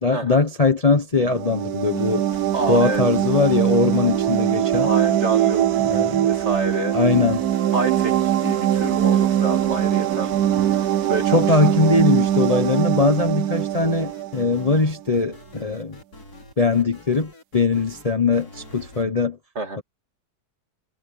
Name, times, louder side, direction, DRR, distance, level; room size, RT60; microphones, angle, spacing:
voice 1, 0.0-2.3 2.7-4.9 5.8-6.3 6.9-7.5 11.3-16.0 16.6-19.4 19.8-19.9, left 3 dB, 25° left, 1.1 m, -21 dB
sound 1, 1.3-14.8, right 11 dB, 70° right, 1.2 m, -22 dB
sound 2, 1.9-19.0, left 2 dB, 70° left, 5.3 m, -42 dB
voice 2, 2.5-3.0 4.8-7.0 7.7-11.6 19.6-19.8, right 3 dB, 45° right, 2.5 m, -28 dB
omnidirectional pair, 1.7 m